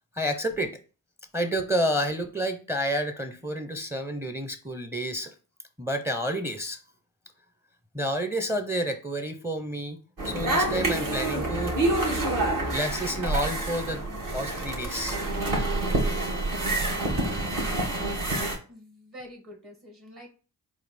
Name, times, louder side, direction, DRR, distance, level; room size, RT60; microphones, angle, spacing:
voice 1, 0.2-0.8 1.3-5.3 5.8-6.8 7.9-10.0 10.2-11.8 12.7-14.0 14.3-15.2, equal, 5° right, 0.6 m, -29 dB
sound 1, 10.2-18.6, right 2 dB, 55° right, 1.6 m, -27 dB
voice 2, 16.7-17.0 18.7-20.3, equal, 35° right, 1.5 m, -46 dB
4.1 x 2.5 x 4.1 m
supercardioid pair, 45°, 40 cm